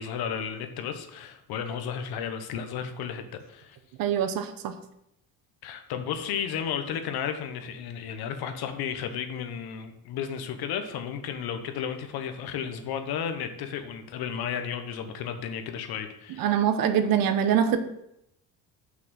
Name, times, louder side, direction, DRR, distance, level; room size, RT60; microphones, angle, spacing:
voice 1, 0.0-3.8 5.6-16.6, left 8 dB, 90° left, 8 dB, 1.1 m, -33 dB
voice 2, 4.0-4.7 16.4-17.8, right 8 dB, 70° right, 9 dB, 1.0 m, -24 dB
6.2 x 5.8 x 6.4 m, 0.79 s
cardioid pair, 150°, 37 cm